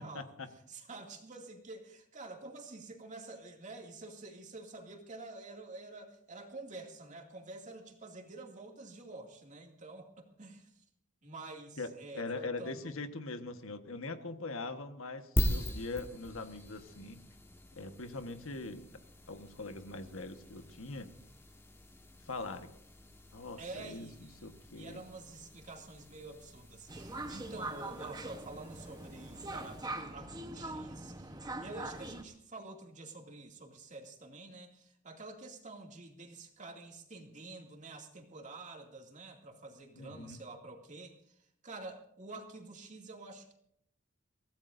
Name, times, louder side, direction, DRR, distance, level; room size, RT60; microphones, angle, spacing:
voice 1, 0.0-0.5 11.8-17.2 17.8-18.9 19.3-21.1 22.3-22.7 23.3-25.0 39.9-40.4, left 3 dB, 75° left, 7 dB, 1.4 m, -42 dB
voice 2, 0.7-10.8 11.2-13.0 23.6-43.5, right 2 dB, 35° right, 2 dB, 2.4 m, -48 dB
sound 1, 15.4-30.1, equal, 10° left, 1.4 m, -42 dB
sound 2, 26.9-32.2, right 2 dB, 20° right, 1.0 m, -42 dB
24.0 x 16.5 x 2.7 m, 0.69 s
head